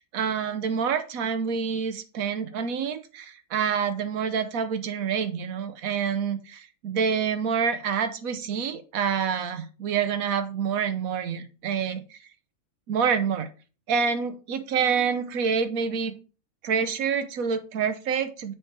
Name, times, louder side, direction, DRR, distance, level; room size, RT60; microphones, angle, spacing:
voice 1, 0.0-12.2 12.9-13.5 13.9-16.1 16.6-18.5, right 6 dB, 90° right, 10 dB, 1.2 m, -27 dB
7.5 x 3.3 x 4.6 m, 0.35 s
omnidirectional pair, 1.4 m